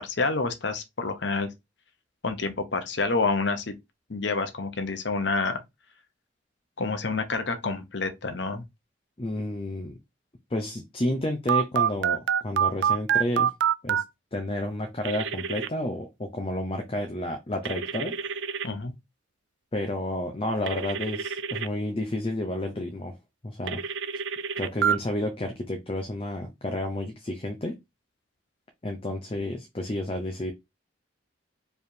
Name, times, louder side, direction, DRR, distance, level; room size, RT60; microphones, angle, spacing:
voice 1, 0.0-1.5 2.2-3.7 4.1-5.6 6.8-8.6 18.6-18.9, left 3 dB, 65° left, 0.9 m, -28 dB
voice 2, 9.2-10.0 10.5-13.5 13.8-14.0 14.3-18.3 19.7-23.2 23.4-23.8 24.6-27.8 28.8-30.5, left 1 dB, 30° left, 0.6 m, -31 dB
Telephone, 11.5-14.0 15.0-15.7 17.7-18.7 20.7-21.7 23.7-25.0, right 8 dB, 70° right, 0.4 m, -26 dB
4.7 x 3.4 x 2.8 m
head